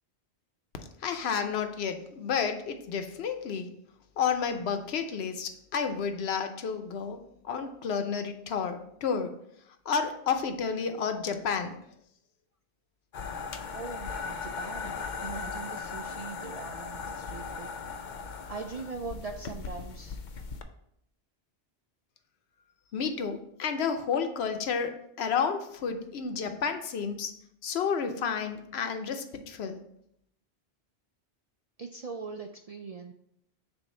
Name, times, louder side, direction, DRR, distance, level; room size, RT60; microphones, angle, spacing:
voice 1, 1.0-3.7 4.2-9.4 9.9-11.7 22.9-27.3 27.6-29.8, left 6 dB, 75° left, 7 dB, 0.9 m, -31 dB
sound 1, 13.1-20.6, left 5 dB, 55° left, 0.6 m, -38 dB
voice 2, 13.7-14.9 15.2-17.7 18.4-20.2 31.8-33.1, right 4 dB, 55° right, 4 dB, 0.4 m, -41 dB
7.0 x 2.6 x 5.3 m, 0.73 s
omnidirectional pair, 1.1 m